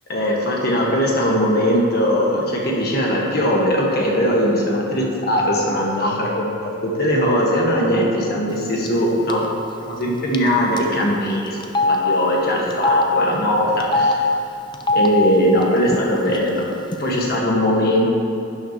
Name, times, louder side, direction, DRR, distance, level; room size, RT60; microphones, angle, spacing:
voice 1, 0.1-9.4 9.9-14.3 14.9-16.7 17.0-18.1, equal, 50° left, -2 dB, 1.5 m, -20 dB
Telephone, 8.9-9.0 9.3-9.5 10.3-10.5 10.8-10.9 11.6-12.0 12.7-13.0 13.8-14.1 14.7-15.1 15.9-16.0 16.3-17.0, left 2 dB, 20° left, 0.4 m, -20 dB
11.5 x 8.4 x 3.0 m, 2.7 s
head